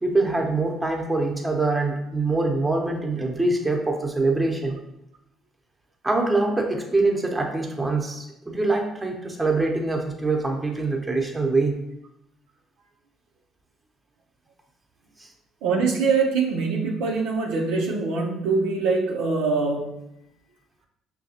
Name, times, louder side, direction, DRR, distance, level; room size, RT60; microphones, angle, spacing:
voice 1, 0.0-4.8 6.0-11.8 15.2-15.3, right 3 dB, 15° right, 1 dB, 0.9 m, -24 dB
voice 2, 15.6-19.9, right 4 dB, 80° right, -2 dB, 0.6 m, -23 dB
5.6 x 2.3 x 2.8 m, 0.84 s
supercardioid pair, 60°, 0 cm